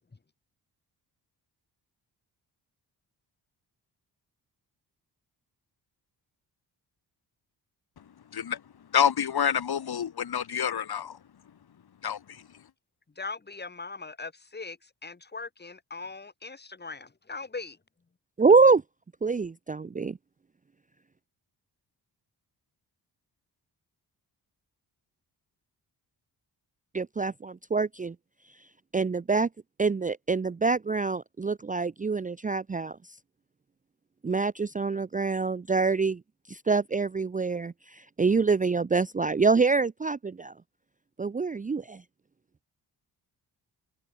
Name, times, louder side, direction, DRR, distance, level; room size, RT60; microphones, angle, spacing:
voice 1, 8.9-11.2 12.0-12.2, left 8 dB, 65° left, 6.3 m, -27 dB
voice 2, 13.2-17.8, left 4 dB, 25° left, 7.1 m, -40 dB
voice 3, 18.4-18.8 19.2-20.2 26.9-28.1 28.9-29.5 29.8-33.0 34.2-36.2 36.5-40.5 41.2-42.0, right 4 dB, 20° right, 0.6 m, -25 dB
wide cardioid pair, 165°, 41 cm